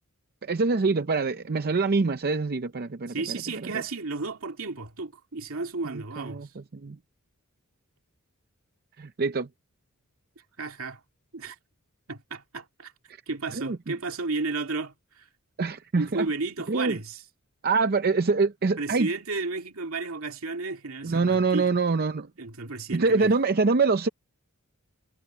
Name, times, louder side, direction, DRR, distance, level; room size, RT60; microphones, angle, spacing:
voice 1, 0.4-3.4 3.7-3.8 5.9-7.0 9.0-9.5 13.5-13.9 15.6-16.3 16.7-17.0 17.6-19.1 21.0-22.3 22.9-24.1, right 4 dB, 45° right, 0.6 m, -25 dB
voice 2, 3.1-6.5 10.6-11.0 11.3-11.6 12.1-12.9 13.3-15.3 15.9-17.2 18.8-21.7 22.4-23.3, right 3 dB, 70° right, 2.6 m, -33 dB
head